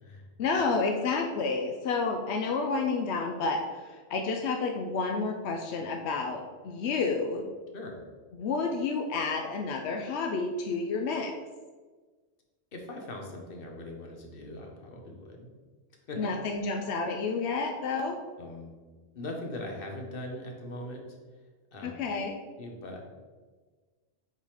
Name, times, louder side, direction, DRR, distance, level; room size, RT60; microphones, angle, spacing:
voice 1, 0.4-7.4 8.4-11.3 16.2-18.2 21.8-22.4, left 4 dB, 85° left, 3 dB, 0.9 m, -30 dB
voice 2, 7.7-8.1 12.7-15.5 16.1-16.2 18.4-18.7 19.1-21.4 21.7-22.0 22.6-23.0, left 1 dB, 55° left, 1 dB, 1.3 m, -41 dB
6.4 x 3.9 x 4.9 m, 1.4 s
omnidirectional pair, 1.1 m